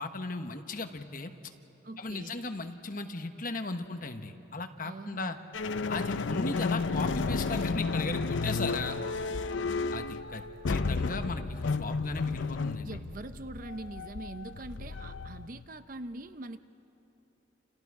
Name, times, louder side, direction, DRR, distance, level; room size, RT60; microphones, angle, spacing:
voice 1, 0.0-1.3 2.0-5.4 5.9-9.0 9.9-13.0, left 3 dB, 45° left, 7 dB, 1.1 m, -36 dB
voice 2, 1.8-2.4 4.8-5.4 12.8-16.6, right 2 dB, 45° right, 11 dB, 0.6 m, -43 dB
sound 1, 5.5-15.6, left 4 dB, 80° left, 0.6 m, -32 dB
29.0 x 28.5 x 4.8 m, 3.0 s
head